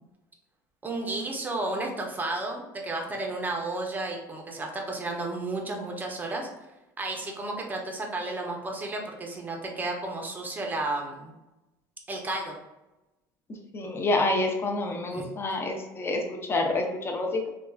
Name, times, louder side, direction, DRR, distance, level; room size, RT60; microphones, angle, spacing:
voice 1, 0.8-6.5 7.0-11.3 12.1-12.6 15.1-15.2, right 2 dB, 20° right, 1 dB, 0.7 m, -32 dB
voice 2, 13.7-17.5, left 2 dB, 25° left, 2 dB, 0.6 m, -28 dB
3.4 x 2.3 x 2.3 m, 1.0 s
supercardioid pair, 100°, 9 cm